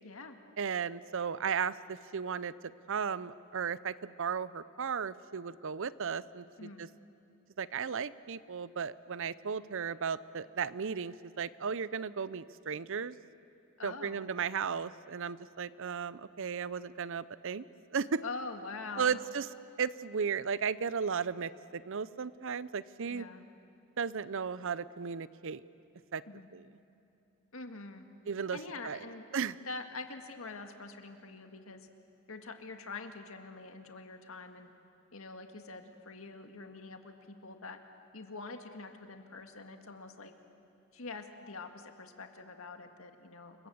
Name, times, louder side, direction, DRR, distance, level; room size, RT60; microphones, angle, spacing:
voice 1, 0.0-0.4 6.6-6.8 13.8-14.3 18.2-19.2 23.1-23.4 26.3-26.5 27.5-28.1 28.5-29.3 29.7-31.9 32.3-34.7 35.1-37.8 38.1-40.3 40.9-43.7, left 3 dB, 70° left, 6 dB, 2.0 m, -45 dB
voice 2, 0.6-2.5 2.9-6.4 6.8-6.9 7.6-13.2 13.8-17.6 17.9-18.2 19.0-19.5 19.8-23.2 24.0-25.6 26.1-26.2 26.5-26.6 28.3-28.6 28.8-29.0 29.3-29.6, right 6 dB, 65° right, 17 dB, 0.6 m, -35 dB
29.0 x 23.0 x 7.9 m, 2.8 s
head